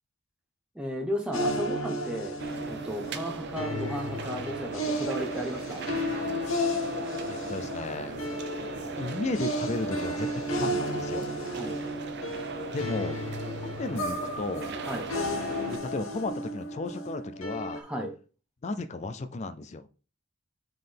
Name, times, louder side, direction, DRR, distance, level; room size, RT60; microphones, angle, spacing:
voice 1, 0.7-2.3 2.6-5.8 11.5-11.8 14.8-15.1 17.7-18.1, equal, 5° right, 1 dB, 0.9 m, -34 dB
sound 1, 1.3-17.8, equal, 70° left, 1.3 m, -33 dB
sound 2, 2.4-15.8, right 3 dB, 50° right, 0.6 m, -39 dB
voice 2, 7.3-8.2 9.0-10.3 10.5-11.3 12.7-13.2 13.6-14.7 15.6-17.8 18.6-19.9, left 3 dB, 30° left, 8 dB, 0.4 m, -34 dB
7.6 x 3.9 x 3.4 m, 0.36 s
head